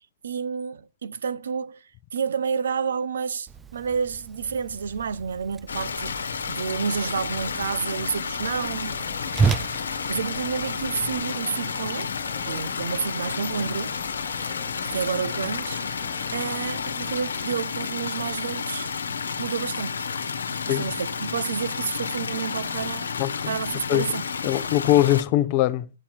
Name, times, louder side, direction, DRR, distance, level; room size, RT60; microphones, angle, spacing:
voice 1, 0.0-12.1 12.4-14.0 14.8-15.8 16.3-18.9 19.4-20.1 20.5-23.1 23.5-24.3, right 6 dB, 75° right, 0.7 m, -30 dB
Whoosh swoosh swish, 3.5-11.2, right 5 dB, 15° right, 0.4 m, -32 dB
sound 1, 5.7-25.2, left 6 dB, 80° left, 1.1 m, -31 dB
sound 2, 8.9-17.5, left 6 dB, 15° left, 1.2 m, -46 dB
voice 2, 23.2-23.5 23.9-24.1 24.4-25.9, left 14 dB, 40° left, 0.7 m, -21 dB
8.8 x 8.7 x 4.5 m
hypercardioid pair, 125°, 0 cm